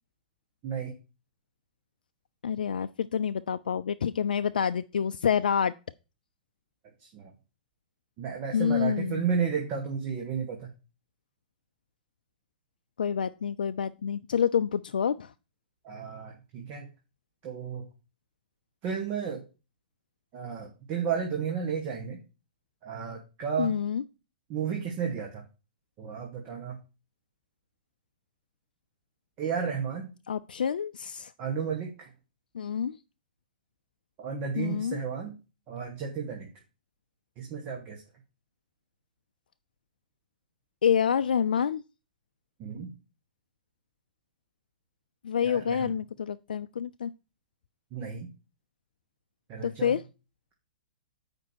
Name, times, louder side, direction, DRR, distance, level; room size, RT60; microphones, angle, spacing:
voice 1, 0.6-0.9 7.1-7.3 8.2-10.7 15.8-16.9 17.4-17.9 18.8-19.4 20.3-22.2 22.8-23.7 24.5-25.4 26.0-26.8 29.4-30.1 31.4-32.1 34.2-35.3 35.7-36.5 37.4-38.0 42.6-42.9 45.4-45.9 47.9-48.3 49.5-50.0, right 6 dB, 35° right, 1 dB, 1.8 m, -33 dB
voice 2, 2.4-5.7 8.5-9.3 13.0-15.3 23.6-24.0 30.3-31.3 32.5-33.0 34.6-35.0 40.8-41.8 45.2-47.1 49.6-50.0, left 7 dB, 75° left, 11 dB, 0.4 m, -27 dB
8.3 x 5.2 x 4.6 m, 0.32 s
figure-of-eight pair, 110°, 5 cm